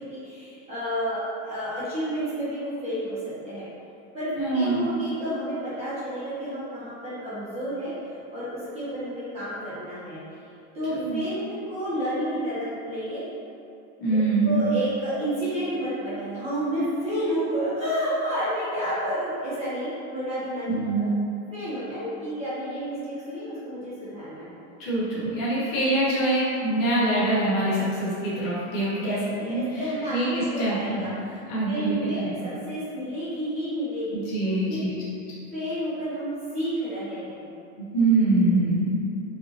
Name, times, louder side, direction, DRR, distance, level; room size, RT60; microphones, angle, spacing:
voice 1, 0.0-3.2 3.4-3.7 4.1-10.4 10.7-13.2 14.1-20.7 20.9-21.0 21.5-24.6 29.0-31.4 31.7-34.1 34.4-34.8 35.5-37.5, right 1 dB, 20° right, -12 dB, 1.1 m, -30 dB
voice 2, 4.3-4.9 10.9-11.2 14.0-14.6 20.6-21.1 24.8-29.2 29.5-29.8 30.1-31.0 31.5-32.3 34.1-35.0 37.8-39.0, right 2 dB, 50° left, -8 dB, 1.2 m, -24 dB
4.8 x 2.7 x 2.9 m, 2.7 s
supercardioid pair, 170°, 35 cm